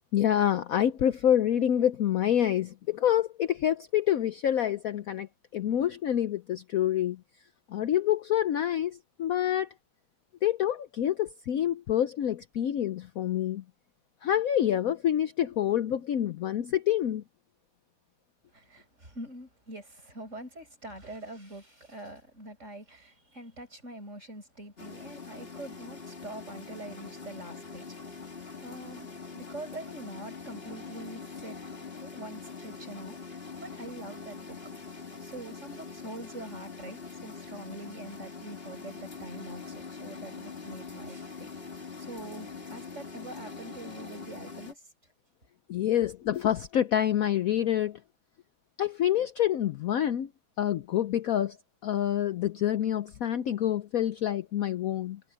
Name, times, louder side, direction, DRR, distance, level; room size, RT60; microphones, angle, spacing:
voice 1, 0.1-5.3 5.5-7.2 7.7-9.7 10.4-13.6 14.2-17.2 45.7-48.0 48.8-50.3 50.6-51.6 51.8-55.2, left 11 dB, 75° left, 0.8 m, -27 dB
voice 2, 18.5-31.6 32.0-34.6 35.2-41.5 42.0-44.8, right 1 dB, 35° right, 7.5 m, -44 dB
sound 1, 24.8-44.7, left 5 dB, 30° left, 2.5 m, -43 dB
omnidirectional pair, 2.3 m